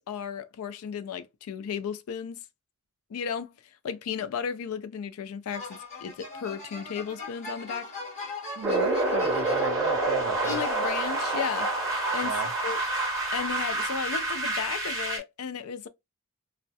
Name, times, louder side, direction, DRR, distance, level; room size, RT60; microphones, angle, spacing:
voice 1, 0.0-2.4 3.1-3.6 3.8-7.9 10.5-11.7 12.1-12.4 12.6-12.8 13.3-15.9, left 7 dB, 80° left, 0.4 m, -34 dB
sound 1, 5.5-9.9 10.4-11.2, left 3 dB, 35° left, 1.1 m, -40 dB
sound 2, 8.6-15.2, right 2 dB, 15° right, 1.0 m, -28 dB
voice 2, 8.6-10.6 12.2-12.5, right 5 dB, 55° right, 0.4 m, -35 dB
2.7 x 2.1 x 2.2 m
head